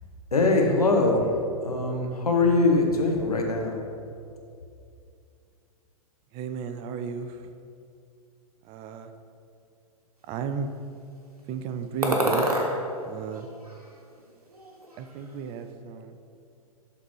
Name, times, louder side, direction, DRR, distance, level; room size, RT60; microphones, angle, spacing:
voice 1, 0.3-3.8, left 3 dB, 85° left, 1 dB, 1.0 m, -22 dB
voice 2, 6.3-7.5 8.6-9.1 10.3-10.7 11.5-12.6 13.0-13.5 15.0-16.2, right 6 dB, 30° right, 8 dB, 0.4 m, -34 dB
sound 1, 12.0-12.7 13.3-14.2 14.5-15.3, right 1 dB, 90° right, 1.1 m, -28 dB
11.5 x 4.0 x 3.1 m, 2.5 s
figure-of-eight pair, 110°, 19 cm